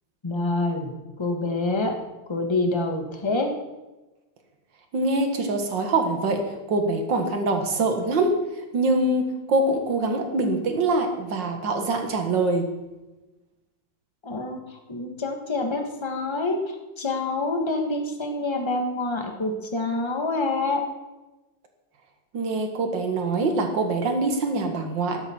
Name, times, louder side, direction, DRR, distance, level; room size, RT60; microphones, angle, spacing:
voice 1, 0.2-1.9 2.3-3.5 14.2-20.8, left 2 dB, 15° left, 3 dB, 1.3 m, -27 dB
voice 2, 4.9-6.4 6.7-8.4 8.7-12.7 22.3-25.2, right 2 dB, 60° right, 5 dB, 2.3 m, -24 dB
13.0 x 12.0 x 4.5 m, 1.1 s
omnidirectional pair, 2.3 m